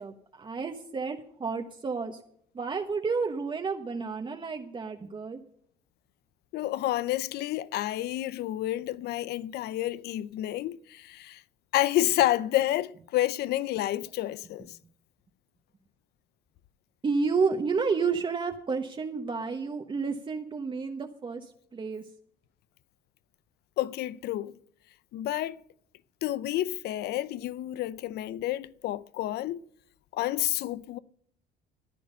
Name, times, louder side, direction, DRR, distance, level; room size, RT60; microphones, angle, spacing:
voice 1, 0.0-2.2 2.5-5.4 17.0-22.1, right 5 dB, 30° right, 1.2 m, -31 dB
voice 2, 6.5-11.4 11.7-14.7 23.8-24.5 25.1-25.6 26.2-29.6 30.1-31.0, left 14 dB, 75° left, 0.6 m, -29 dB
14.5 x 10.5 x 5.4 m
cardioid pair, 110°, 17 cm